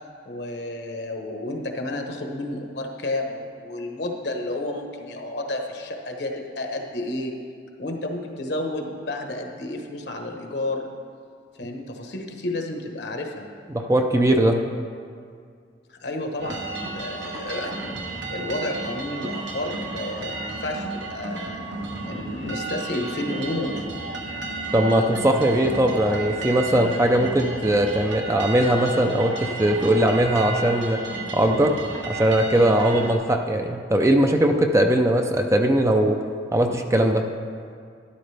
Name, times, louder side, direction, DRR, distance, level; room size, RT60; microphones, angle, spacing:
voice 1, 0.2-7.3 7.8-10.9 11.5-13.5 15.9-21.7 22.1-23.8, left 1 dB, 65° left, 2 dB, 1.2 m, -31 dB
voice 2, 13.7-14.6 24.7-31.0 31.3-31.8 32.1-36.2 36.5-37.3, right 1 dB, 15° right, 4 dB, 0.5 m, -20 dB
sound 1, 16.4-33.1, right 3 dB, 75° right, 1.3 m, -33 dB
13.0 x 11.5 x 3.4 m, 2.2 s
head